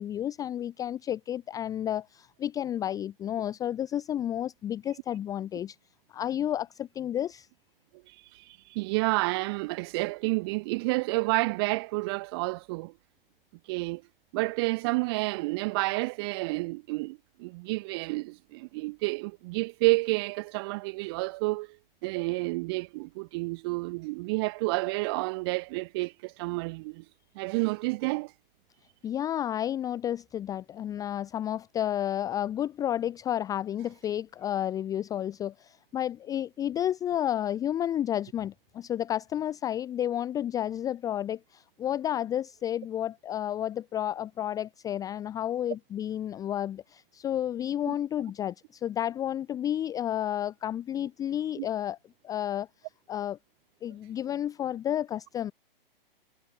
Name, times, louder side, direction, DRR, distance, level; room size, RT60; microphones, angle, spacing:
voice 1, 0.0-5.8 6.1-7.5 29.0-52.0 52.2-52.7 53.1-53.4 53.8-55.5, left 11 dB, 10° left, 0.7 m, -31 dB
voice 2, 8.1-12.9 13.7-14.0 14.3-21.8 22.0-27.0 27.4-28.3 47.9-48.0 51.6-51.7, right 25 dB, 25° right, 0.6 m, -30 dB
figure-of-eight pair, 125°, 29 cm